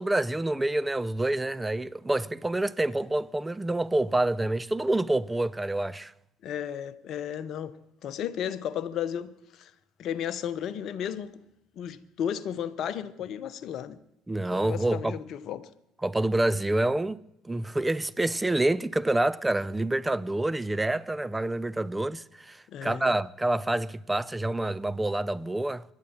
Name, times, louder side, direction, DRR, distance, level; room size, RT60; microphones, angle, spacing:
voice 1, 0.0-6.1 14.3-15.2 16.0-25.8, right 1 dB, 10° right, 0.6 m, -27 dB
voice 2, 6.4-7.8 8.0-9.7 10.0-11.3 11.8-14.0 14.5-15.7 22.7-23.1, left 9 dB, 50° left, 1.0 m, -34 dB
25.5 x 11.5 x 4.5 m
figure-of-eight pair, 60°, 0 cm